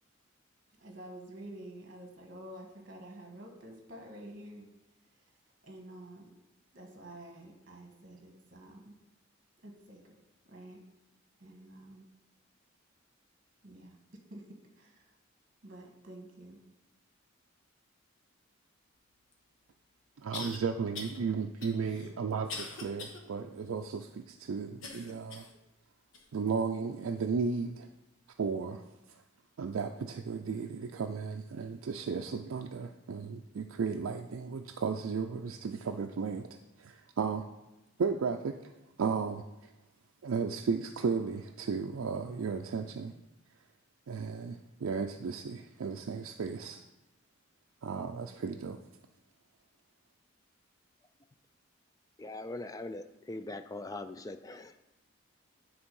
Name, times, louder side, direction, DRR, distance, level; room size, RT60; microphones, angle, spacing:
voice 1, 0.8-4.7 5.6-6.3 6.7-8.9 9.6-10.1 10.5-10.8 11.4-12.0 13.6-13.9 14.3-14.4 14.8-15.0 15.6-16.6, right 1 dB, 40° right, 2 dB, 1.3 m, -49 dB
sound 1, 19.3-19.4 20.3-20.6 20.9-21.2 21.6-23.2 23.7-23.8 24.8-25.6 26.1-26.3 27.0-27.1, left 3 dB, 70° left, 1.2 m, -42 dB
voice 2, 20.2-25.5 26.3-27.9 28.4-28.8 29.6-37.5 38.0-38.7 39.0-39.7 40.2-43.1 44.1-46.8 47.8-48.8, right 5 dB, 80° right, 4 dB, 0.4 m, -34 dB
voice 3, 52.2-54.8, left 2 dB, 15° left, 9 dB, 0.3 m, -41 dB
9.7 x 3.5 x 5.4 m, 0.97 s
head